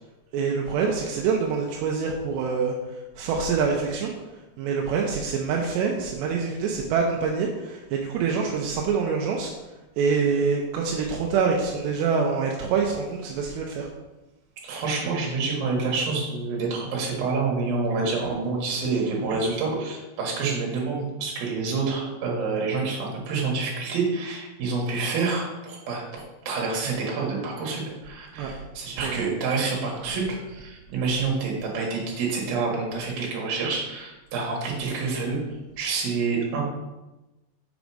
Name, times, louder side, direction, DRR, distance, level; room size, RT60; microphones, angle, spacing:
voice 1, 0.3-4.1 4.6-9.5 10.0-13.9 28.4-28.5 29.0-29.2, right 5 dB, 85° right, 0 dB, 2.7 m, -25 dB
voice 2, 14.6-35.4 35.8-36.6, right 4 dB, 60° right, -2 dB, 3.3 m, -28 dB
7.0 x 5.2 x 4.8 m, 1.1 s
omnidirectional pair, 5.3 m